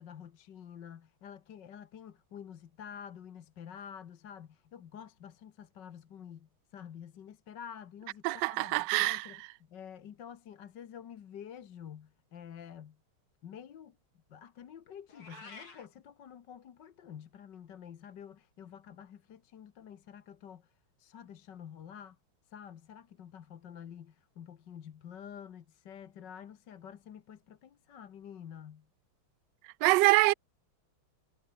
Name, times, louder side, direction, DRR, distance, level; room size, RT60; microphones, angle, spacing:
voice 1, 0.0-9.4 9.7-13.0 13.4-14.0 14.3-22.2 22.5-28.9, left 8 dB, 60° left, 1.8 m, -49 dB
voice 2, 8.2-9.4 29.8-30.3, right 21 dB, 75° right, 1.1 m, -25 dB
Meow, 15.1-15.9, left 4 dB, 85° left, 5.3 m, -49 dB
omnidirectional pair, 2.3 m